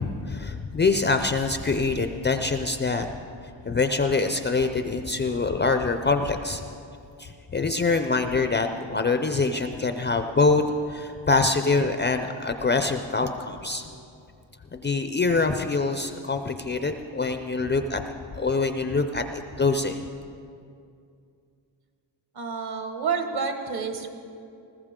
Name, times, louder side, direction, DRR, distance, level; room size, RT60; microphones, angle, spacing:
voice 1, 0.0-3.1 3.6-6.6 7.2-10.6 10.9-13.9 14.7-18.0 18.3-19.2 19.6-20.1, left 3 dB, 25° left, 6 dB, 0.4 m, -24 dB
voice 2, 22.3-24.2, right 5 dB, 55° right, 5 dB, 1.5 m, -29 dB
20.0 x 14.5 x 3.7 m, 2.5 s
cardioid pair, 145°, 47 cm